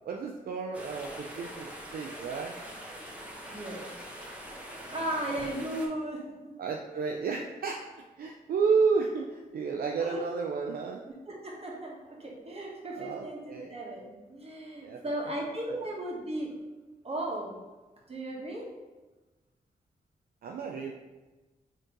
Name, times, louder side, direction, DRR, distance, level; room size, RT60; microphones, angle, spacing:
voice 1, 0.1-2.6 6.6-7.8 8.2-11.0 13.0-13.8 14.8-15.0 15.7-15.8 20.4-20.9, right 5 dB, 70° right, 1 dB, 0.4 m, -31 dB
sound 1, 0.7-5.9, equal, 10° right, 1.1 m, -43 dB
voice 2, 3.5-3.9 4.9-6.5 10.0-10.2 11.3-16.5 17.0-17.6 18.1-18.7, right 1 dB, 40° right, -2 dB, 1.4 m, -36 dB
4.3 x 3.1 x 3.8 m, 1.2 s
supercardioid pair, 45°, 16 cm